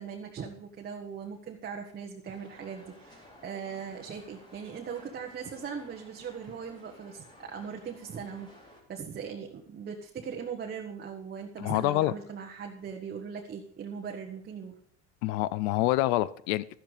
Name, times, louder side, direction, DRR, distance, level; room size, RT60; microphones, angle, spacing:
voice 1, 0.0-8.5 8.9-14.7, right 6 dB, 30° right, 1 dB, 1.5 m, -40 dB
sound 1, 2.2-8.8, left 1 dB, 15° left, 3.9 m, -55 dB
voice 2, 11.6-12.1 15.2-16.8, left 16 dB, 85° left, 19 dB, 0.6 m, -27 dB
12.5 x 10.5 x 5.1 m, 0.64 s
cardioid pair, 130°, 31 cm